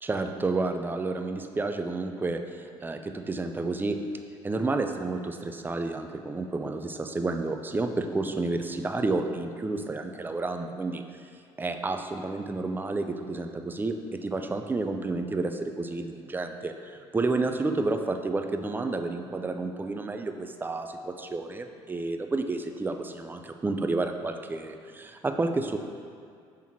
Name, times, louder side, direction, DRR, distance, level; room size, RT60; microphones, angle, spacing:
voice 1, 0.0-4.0 4.4-11.0 11.6-25.8, right 3 dB, 15° right, 6 dB, 0.4 m, -30 dB
6.1 x 3.5 x 4.4 m, 2.3 s
hypercardioid pair, 60°, 14 cm